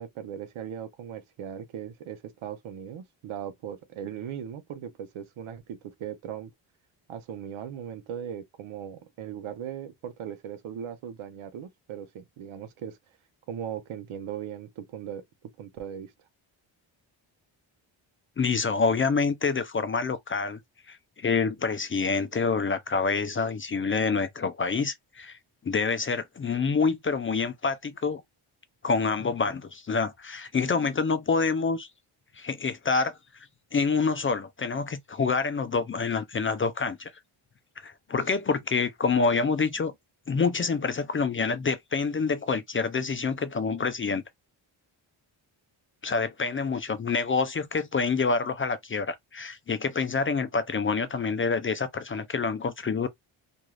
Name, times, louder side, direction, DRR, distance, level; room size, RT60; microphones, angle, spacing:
voice 1, 0.0-6.5 7.1-13.0 13.5-15.2 15.6-16.1, right 9 dB, 80° right, 0.8 m, -38 dB
voice 2, 18.4-20.6 20.9-25.4 25.6-28.2 28.8-31.9 32.4-33.2 33.7-37.1 37.8-39.9 40.3-44.2 46.0-53.1, left 4 dB, 30° left, 0.4 m, -27 dB
2.6 x 2.3 x 3.1 m
cardioid pair, 95°, 48 cm